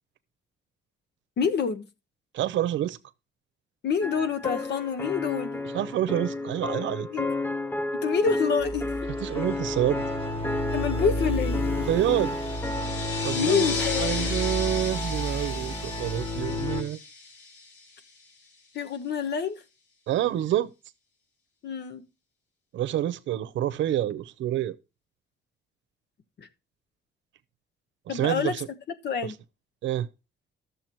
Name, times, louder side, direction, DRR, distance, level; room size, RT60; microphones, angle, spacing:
voice 1, 1.4-1.9 3.8-5.6 7.1-7.3 7.9-8.8 10.7-11.8 13.3-14.3 18.7-19.6 21.6-22.0 26.4-26.5 28.1-28.5 29.0-29.3, left 6 dB, 65° left, 1.2 m, -27 dB
voice 2, 2.3-3.0 5.7-7.1 9.2-10.0 11.9-12.4 13.2-17.0 20.1-20.7 22.7-24.8 28.1-28.7 29.2-29.3 29.8-30.1, right 12 dB, 85° right, 0.7 m, -27 dB
sound 1, 4.0-13.5, left 2 dB, 10° left, 0.5 m, -32 dB
sound 2, 8.6-16.8, left 1 dB, 30° left, 2.0 m, -31 dB
sound 3, 12.0-18.2, left 4 dB, 85° left, 3.3 m, -36 dB
12.5 x 6.9 x 4.4 m
cardioid pair, 120°, 19 cm